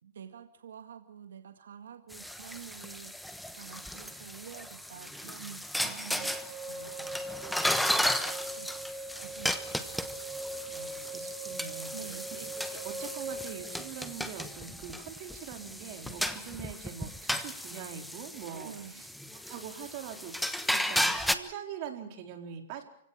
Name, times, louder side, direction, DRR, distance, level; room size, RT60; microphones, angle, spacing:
voice 1, 0.0-7.3 7.6-8.0 8.5-8.8 9.1-10.0 11.9-12.3 18.6-19.0, right 8 dB, 90° right, 7 dB, 1.9 m, -48 dB
sound 1, 2.1-21.3, equal, ahead, 1.2 m, -35 dB
sound 2, 6.2-14.9, right 2 dB, 25° right, 1.7 m, -42 dB
voice 2, 10.7-19.1 19.5-20.3 20.7-22.8, right 8 dB, 50° right, 4 dB, 4.2 m, -43 dB
28.5 x 17.0 x 7.3 m, 0.73 s
hypercardioid pair, 140°, 0 cm